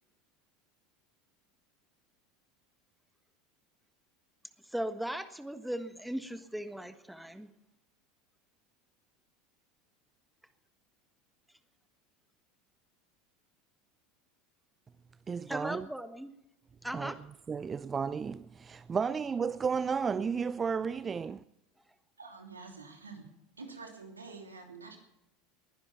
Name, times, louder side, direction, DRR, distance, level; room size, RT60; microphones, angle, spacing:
voice 1, 4.7-7.5 15.5-16.3 16.8-17.2, right 1 dB, 5° right, 1.4 m, -38 dB
voice 2, 15.3-15.9 16.9-17.1 17.5-21.4, right 6 dB, 25° right, 0.5 m, -33 dB
voice 3, 22.2-23.2 23.6-25.0, right 4 dB, 90° right, 2.9 m, -47 dB
20.5 x 10.5 x 5.9 m
figure-of-eight pair, 80°, 0 cm